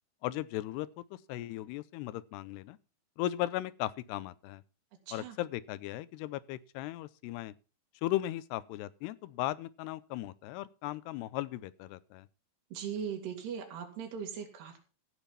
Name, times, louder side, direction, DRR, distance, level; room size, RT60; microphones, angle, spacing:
voice 1, 0.2-2.8 3.2-4.6 5.1-7.5 8.0-12.3, left 15 dB, 85° left, 2.8 m, -37 dB
voice 2, 5.1-5.4 12.7-14.8, right 7 dB, 80° right, 4.4 m, -39 dB
15.5 x 7.3 x 5.7 m
omnidirectional pair, 4.7 m